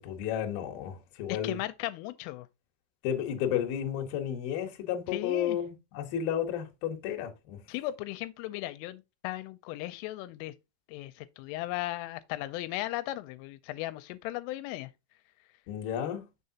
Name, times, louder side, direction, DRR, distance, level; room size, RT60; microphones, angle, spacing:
voice 1, 0.0-1.6 3.0-7.6 15.7-16.2, left 9 dB, 70° left, 2.3 m, -32 dB
voice 2, 1.3-2.5 5.1-5.6 7.7-10.5 10.9-14.9, left 16 dB, 85° left, 3.1 m, -36 dB
6.8 x 6.5 x 2.8 m
omnidirectional pair, 5.8 m